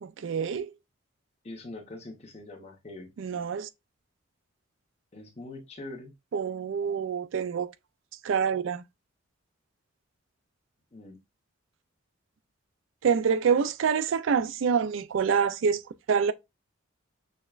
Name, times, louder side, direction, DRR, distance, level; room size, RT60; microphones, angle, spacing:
voice 1, 0.0-0.7 3.2-3.7 6.3-7.7 8.2-8.8 13.0-15.8 16.1-16.3, right 6 dB, 75° right, 0.4 m, -26 dB
voice 2, 1.4-3.1 5.1-6.1 10.9-11.2, left 2 dB, 30° left, 1.0 m, -43 dB
6.3 x 2.2 x 2.3 m
head